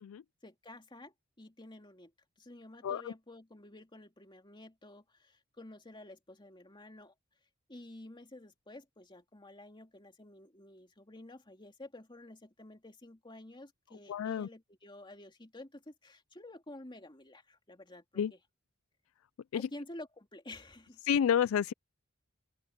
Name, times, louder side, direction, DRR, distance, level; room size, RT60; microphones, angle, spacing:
voice 1, 0.4-2.1 2.4-7.1 7.7-18.4 19.5-21.0, left 1 dB, 25° left, 2.6 m, -51 dB
voice 2, 14.1-14.5 18.2-18.3 19.5-19.7 21.0-21.7, left 8 dB, 75° left, 0.3 m, -29 dB
open air
head